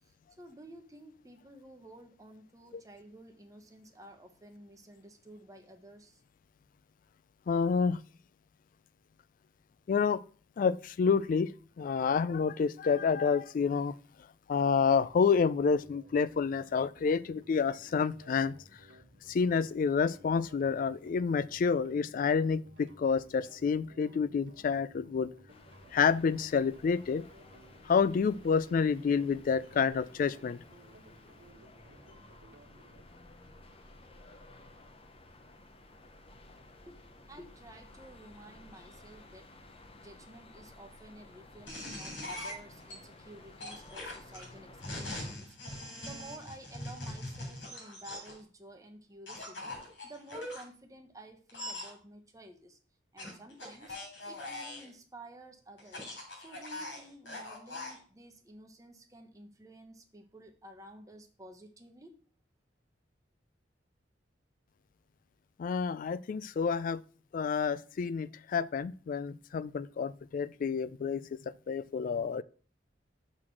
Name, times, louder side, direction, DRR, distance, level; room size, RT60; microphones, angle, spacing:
voice 1, 0.0-6.2 36.9-39.5 39.9-52.8 53.1-54.0 54.2-62.1, right 1 dB, 20° right, 1.0 m, -52 dB
voice 2, 7.5-8.0 9.9-10.2 10.6-11.5 11.8-13.9 14.5-18.5 19.3-25.3 25.9-27.2 27.9-30.6 65.6-67.0 67.3-72.4, left 5 dB, 50° left, 0.3 m, -29 dB
sound 1, 15.0-33.0, right 1 dB, 70° right, 1.6 m, -58 dB
sound 2, 25.5-45.4, left 2 dB, 30° left, 0.8 m, -55 dB
sound 3, 41.7-42.9 43.6-48.4 49.3-50.6 51.5-51.9 53.2-54.9 55.8-58.0, left 1 dB, 85° left, 3.4 m, -42 dB
6.2 x 3.8 x 6.1 m
head